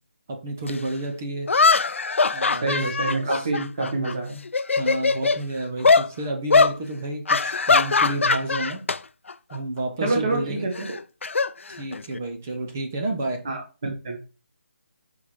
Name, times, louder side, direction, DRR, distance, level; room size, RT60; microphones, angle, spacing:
voice 1, 0.3-1.5 2.3-2.9 3.3-3.5 4.8-8.8 9.5-10.7 11.7-13.4, right 2 dB, 10° right, 3 dB, 0.4 m, -30 dB
sound 1, 0.7-0.8 1.5-4.1 4.5-5.4 5.8-6.1 6.5-6.8 7.3-9.0 9.3-9.6 10.8-12.2, left 4 dB, 75° left, 0.4 m, -21 dB
voice 2, 2.6-4.4 10.0-10.9 13.4-14.1, right 2 dB, 30° right, 2 dB, 1.5 m, -27 dB
5.5 x 3.8 x 4.6 m, 0.33 s
hypercardioid pair, 180°, 7 cm